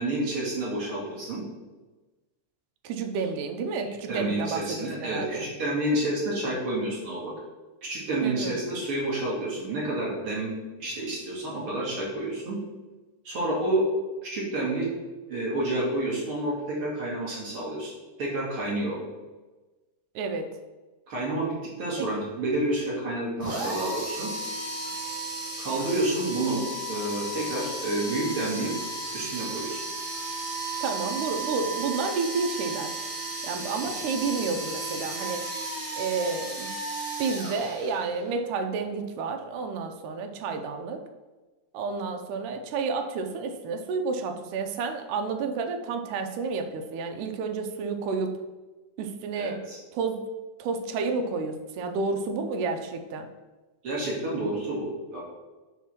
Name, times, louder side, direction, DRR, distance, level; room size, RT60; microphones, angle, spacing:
voice 1, 0.0-1.4 4.1-7.3 7.8-10.5 10.8-12.6 13.2-13.8 14.2-14.9 15.3-17.9 18.2-19.0 21.1-24.3 25.6-26.6 26.9-28.7 29.1-29.8 33.8-34.0 49.4-49.8 53.8-55.2, right 1 dB, 50° right, -5 dB, 2.3 m, -29 dB
voice 2, 2.8-5.5 8.2-8.6 20.2-20.5 22.0-22.1 30.8-33.0 33.4-35.5 35.9-36.7 37.2-41.0 41.7-48.4 49.0-49.7 49.9-50.2 50.6-53.3, right 4 dB, 85° right, 5 dB, 2.2 m, -30 dB
sound 1, 23.4-38.3, right 2 dB, 35° right, 1.6 m, -34 dB
5.8 x 3.6 x 6.0 m, 1.2 s
omnidirectional pair, 3.6 m